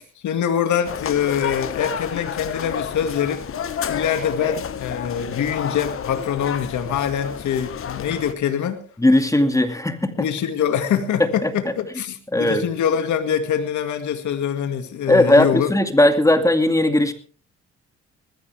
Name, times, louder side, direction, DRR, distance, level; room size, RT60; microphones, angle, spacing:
voice 1, 0.0-3.5 3.9-8.8 10.2-15.7, left 8 dB, 70° left, 2.2 m, -24 dB
sound 1, 0.8-8.3, left 8 dB, 45° left, 1.2 m, -30 dB
voice 2, 9.0-10.3 11.2-11.5 12.3-12.7 15.1-17.1, left 1 dB, 10° left, 2.4 m, -17 dB
20.0 x 15.5 x 3.5 m
cardioid pair, 90°, 30 cm